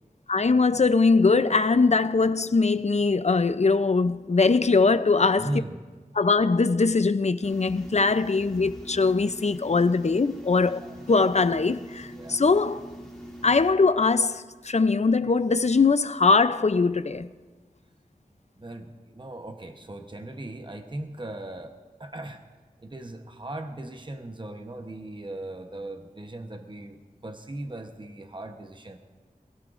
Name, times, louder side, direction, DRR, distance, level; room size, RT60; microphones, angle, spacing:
voice 1, 0.3-5.6 6.2-10.8 11.1-12.8 13.4-17.3, left 4 dB, 50° left, 0.5 m, -21 dB
voice 2, 5.4-5.8 10.6-11.0 12.1-12.4 18.6-22.4 22.8-29.0, right 1 dB, 30° right, 1.0 m, -38 dB
sound 1, 7.4-13.7, equal, 5° left, 2.9 m, -43 dB
24.0 x 16.5 x 2.5 m
wide cardioid pair, 50°, 15 cm